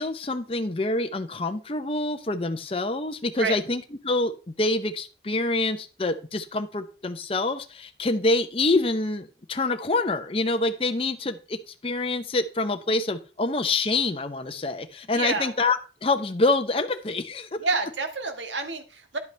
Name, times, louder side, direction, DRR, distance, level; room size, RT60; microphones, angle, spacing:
voice 1, 0.0-17.6, left 2 dB, 30° left, 7 dB, 0.7 m, -26 dB
voice 2, 15.1-15.5 17.6-19.2, right 4 dB, 85° right, 6 dB, 1.6 m, -29 dB
10.5 x 8.0 x 3.3 m, 0.34 s
head